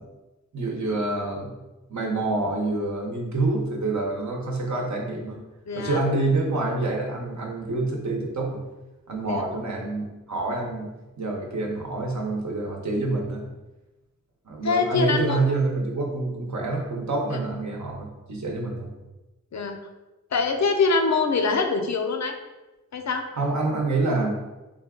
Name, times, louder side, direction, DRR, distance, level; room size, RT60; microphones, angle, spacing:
voice 1, 0.5-1.6 1.9-5.4 5.7-8.6 9.1-13.4 14.4-18.9 23.3-24.4, right 2 dB, 65° right, 0 dB, 0.8 m, -27 dB
voice 2, 5.7-6.0 9.2-9.4 14.6-15.4 19.5-19.8 20.3-22.3 22.9-23.3, left 4 dB, 60° left, 5 dB, 0.5 m, -24 dB
3.8 x 2.3 x 3.6 m, 1.1 s
wide cardioid pair, 70°, 32 cm